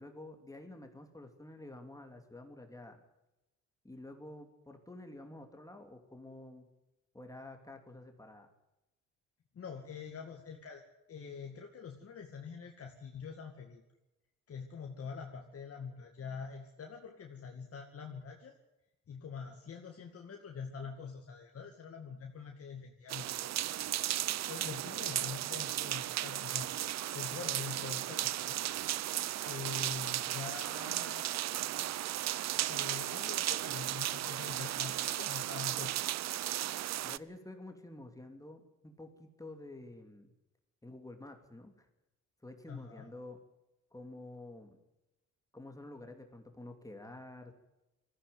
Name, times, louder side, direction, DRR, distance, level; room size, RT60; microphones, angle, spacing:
voice 1, 0.0-3.0 3.8-6.7 7.1-8.5 25.1-25.2 37.0-40.3 40.8-41.9 42.4-43.4 43.9-44.8 45.5-47.5, left 2 dB, 10° left, 5 dB, 2.8 m, -49 dB
voice 2, 9.5-10.8 11.1-13.8 14.5-18.5 19.1-23.5 24.5-26.7 27.1-28.6 29.1-31.3 32.7-35.9 42.7-43.1, left 6 dB, 50° left, 2 dB, 2.3 m, -45 dB
sound 1, 23.1-37.2, right 13 dB, 60° right, 0.6 m, -35 dB
19.0 x 15.0 x 9.3 m, 0.96 s
cardioid pair, 90°, 30 cm